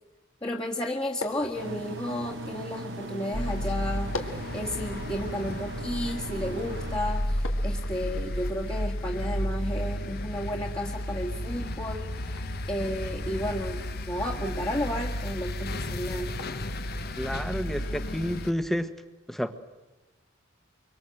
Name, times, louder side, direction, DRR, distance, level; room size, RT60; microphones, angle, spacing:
voice 1, 0.4-12.3 12.7-16.3, left 1 dB, 20° left, 0 dB, 1.8 m, -33 dB
sound 1, 1.2-18.5, left 3 dB, 80° left, 2.3 m, -46 dB
sound 2, 1.5-7.0, right 1 dB, 60° right, 1.1 m, -39 dB
sound 3, 3.3-18.5, left 1 dB, 50° left, 1.3 m, -33 dB
voice 2, 17.2-18.9 19.3-19.5, equal, ahead, 10 dB, 1.2 m, -30 dB
24.5 x 24.5 x 7.8 m, 1.1 s
head